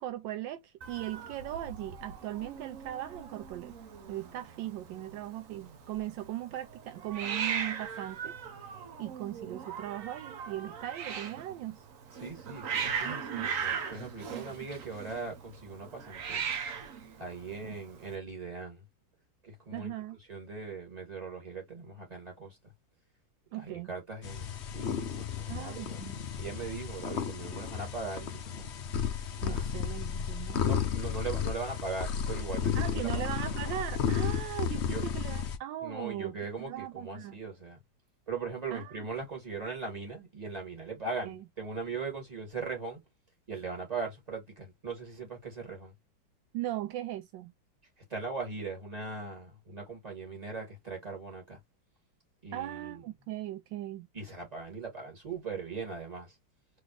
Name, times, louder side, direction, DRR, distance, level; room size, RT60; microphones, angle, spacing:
voice 1, 0.0-3.7 4.1-8.3 9.0-11.8 13.0-13.5 17.6-17.7 19.7-20.2 23.5-23.9 25.5-26.2 29.4-30.6 32.7-37.4 38.7-39.0 41.2-41.5 46.5-47.5 52.5-54.1, right 13 dB, 75° right, 1.2 m, -39 dB
Hiss, 0.8-18.1, right 6 dB, 55° right, 1.1 m, -39 dB
voice 2, 12.1-16.4 17.2-18.8 19.4-19.9 20.3-22.6 23.5-26.0 26.4-28.6 29.4-29.7 30.6-33.3 34.8-35.1 35.8-37.8 38.3-43.0 43.5-45.9 48.1-51.6 52.4-53.0 54.1-56.3, right 4 dB, 20° right, 2.5 m, -39 dB
sound 1, 24.2-35.6, left 7 dB, 65° left, 0.6 m, -33 dB
4.0 x 3.1 x 3.2 m
omnidirectional pair, 2.1 m